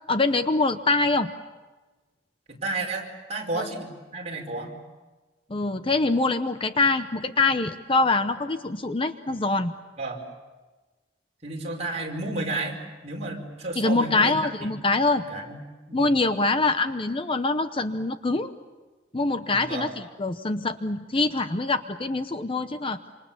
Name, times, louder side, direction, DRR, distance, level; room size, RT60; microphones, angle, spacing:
voice 1, 0.1-1.3 3.6-3.7 5.5-9.7 13.8-15.2 15.9-18.5 19.1-23.0, left 3 dB, 30° left, 9 dB, 0.8 m, -24 dB
voice 2, 2.5-4.7 10.0-10.2 11.4-12.8 13.0-14.3 15.3-15.6 15.9-16.1 19.5-19.9, right 2 dB, 35° right, 0 dB, 5.1 m, -32 dB
27.0 x 27.0 x 7.3 m, 1.2 s
head